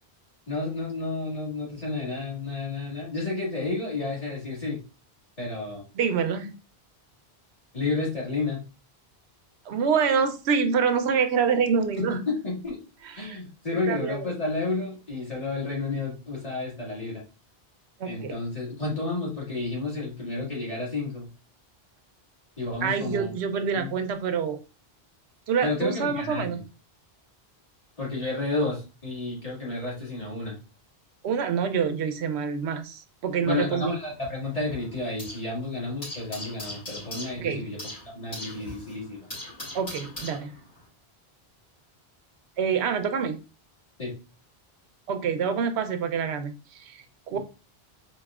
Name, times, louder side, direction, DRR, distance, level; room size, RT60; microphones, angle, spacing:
voice 1, 0.5-4.8 5.4-5.8 7.7-8.6 11.9-12.8 13.1-17.2 18.0-21.3 22.6-23.3 23.7-23.9 25.6-26.6 28.0-30.6 33.4-37.8 38.1-39.2 44.0-44.2 47.3-47.4, left 3 dB, 35° left, 1.8 m, -31 dB
voice 2, 5.9-6.5 9.7-12.2 13.0-13.4 13.9-14.2 18.0-18.3 22.8-24.6 25.5-26.6 31.2-33.9 37.4-37.6 39.7-40.6 42.6-43.4 45.1-47.4, right 6 dB, 85° right, 0.8 m, -26 dB
sound 1, 33.4-35.5 35.8-40.9, left 1 dB, 65° left, 2.5 m, -40 dB
4.1 x 3.1 x 2.3 m
omnidirectional pair, 1.1 m